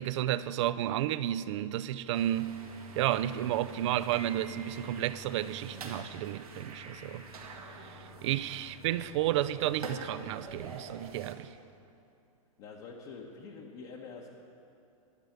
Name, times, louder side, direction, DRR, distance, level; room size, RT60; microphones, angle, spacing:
voice 1, 0.0-2.6 3.0-7.5 7.8-11.5, right 13 dB, 55° right, 0.4 m, -32 dB
sound 1, 2.1-11.3, right 2 dB, 85° right, 1.6 m, -46 dB
voice 2, 12.6-14.3, left 4 dB, 45° left, 1.1 m, -46 dB
12.0 x 6.2 x 9.2 m
hypercardioid pair, 125°, 18 cm